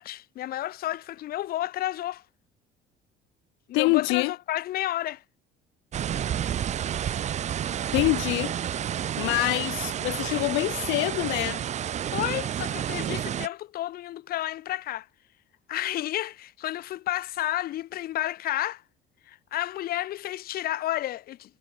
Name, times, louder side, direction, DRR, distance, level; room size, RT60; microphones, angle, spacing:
voice 1, 0.0-2.2 3.7-5.2 12.1-15.1 15.7-18.8 19.3-21.6, left 14 dB, 55° left, 4.0 m, -31 dB
voice 2, 3.7-4.3 7.9-8.5 9.2-11.6, left 27 dB, 90° left, 0.5 m, -25 dB
sound 1, 5.9-13.5, right 10 dB, 40° right, 2.4 m, -30 dB
cardioid pair, 150°, 18 cm